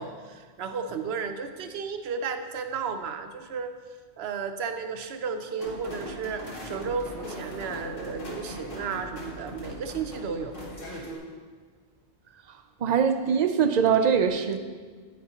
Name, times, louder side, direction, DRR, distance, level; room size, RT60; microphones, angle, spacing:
voice 1, 0.0-3.7 4.2-10.6, right 5 dB, 80° right, 8 dB, 0.9 m, -33 dB
sound 1, 5.6-11.2, equal, 60° left, 2.1 m, -39 dB
voice 2, 12.8-14.6, right 7 dB, 50° right, 8 dB, 0.6 m, -22 dB
10.0 x 9.2 x 2.9 m, 1.5 s
omnidirectional pair, 1.1 m